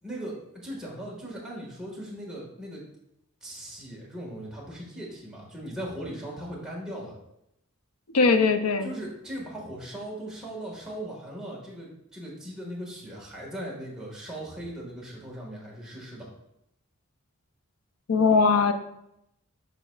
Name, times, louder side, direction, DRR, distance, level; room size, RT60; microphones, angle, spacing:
voice 1, 0.0-2.8 3.4-7.1 8.8-16.3, right 1 dB, 5° right, -5 dB, 1.8 m, -38 dB
voice 2, 8.1-8.9 18.1-18.7, left 4 dB, 80° left, 8 dB, 0.6 m, -20 dB
12.0 x 4.1 x 2.4 m, 0.81 s
head